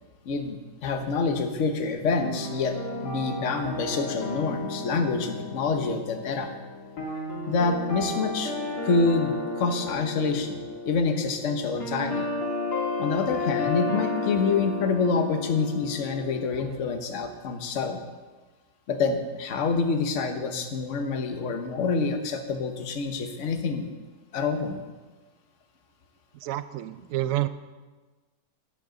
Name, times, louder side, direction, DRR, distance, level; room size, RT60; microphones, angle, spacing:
voice 1, 0.2-2.8 3.0-6.5 7.5-12.3 13.0-18.0 18.9-23.8 24.3-24.8, left 4 dB, 50° left, 6 dB, 1.2 m, -27 dB
sound 1, 2.2-16.6, left 3 dB, 70° left, 2.7 m, -33 dB
voice 2, 26.4-27.5, right 15 dB, 75° right, 13 dB, 0.8 m, -28 dB
13.5 x 10.0 x 3.9 m, 1.3 s
omnidirectional pair, 1.8 m